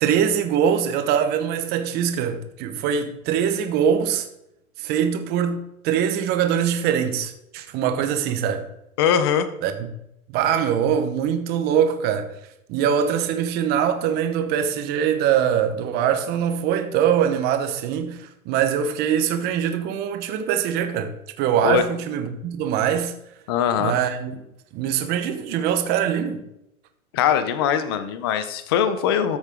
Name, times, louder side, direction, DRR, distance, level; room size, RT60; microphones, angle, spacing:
voice 1, 0.0-4.3 4.8-8.7 9.6-9.7 10.3-12.3 12.7-23.1 23.8-24.3 24.7-26.4, right 8 dB, 20° right, 0.9 m, -23 dB
voice 2, 9.0-9.5 21.6-21.8 23.5-24.0 27.1-29.4, left 8 dB, 20° left, 0.4 m, -21 dB
13.5 x 6.6 x 3.6 m
hypercardioid pair, 150°, 43 cm